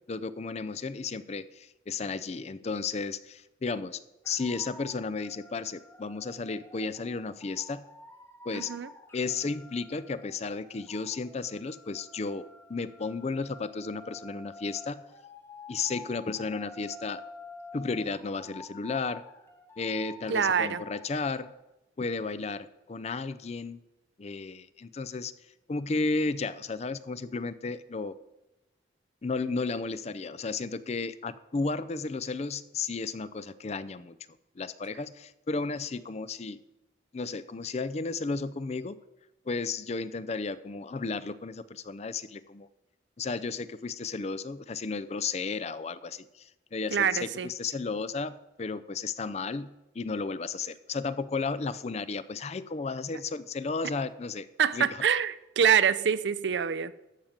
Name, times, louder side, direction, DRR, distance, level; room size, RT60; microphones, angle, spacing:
voice 1, 0.1-4.0 4.3-7.8 8.4-8.7 9.1-15.0 15.7-17.2 17.7-19.2 19.8-21.5 22.0-23.8 24.2-25.3 25.7-28.1 29.2-34.2 34.6-36.6 37.1-39.0 39.5-42.7 43.2-54.5 54.7-55.0, left 4 dB, 35° left, 0.4 m, -33 dB
sound 1, 4.2-21.5, left 3 dB, 15° left, 0.9 m, -49 dB
voice 2, 8.5-8.9 20.3-20.8 46.9-47.5 54.6-56.9, right 7 dB, 75° right, 0.5 m, -25 dB
13.0 x 5.1 x 7.2 m
head